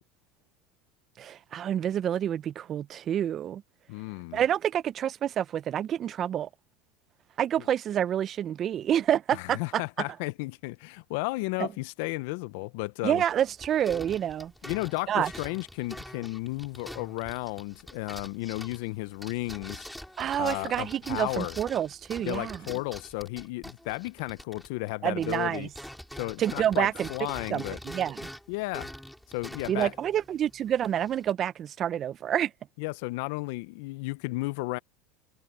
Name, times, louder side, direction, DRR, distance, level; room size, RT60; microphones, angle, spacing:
voice 1, 1.2-3.6 4.3-6.5 7.4-9.8 11.6-11.7 13.0-14.5 15.1-15.3 20.2-22.6 25.0-25.7 26.4-27.1 27.5-28.3 29.7-32.5, right 10 dB, 40° right, 0.7 m, -28 dB
voice 2, 3.9-4.4 9.3-13.2 14.6-19.9 20.4-21.6 22.2-25.7 26.2-27.8 28.5-28.9 29.3-29.9 32.8-34.8, left 23 dB, 70° left, 0.9 m, -33 dB
sound 1, 13.3-24.9 25.2-31.3, equal, ahead, 6.1 m, -44 dB
hypercardioid pair, 100°, 0 cm